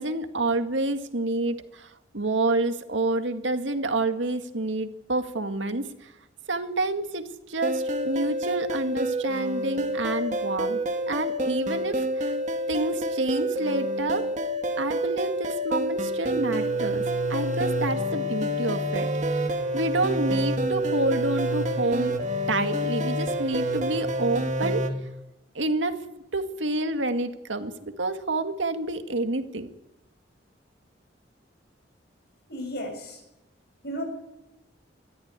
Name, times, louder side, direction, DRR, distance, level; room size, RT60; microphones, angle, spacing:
voice 1, 0.0-6.1 6.5-10.8 11.1-12.3 12.7-14.3 14.8-19.5 19.7-22.2 22.5-24.8 25.6-26.0 26.3-29.7, right 2 dB, 85° right, 7 dB, 2.0 m, -28 dB
sound 1, 7.6-24.9, right 1 dB, 40° right, 2.5 m, -28 dB
voice 2, 32.5-33.2 33.8-34.0, equal, 60° left, 4 dB, 7.2 m, -33 dB
22.0 x 14.0 x 9.6 m, 0.93 s
head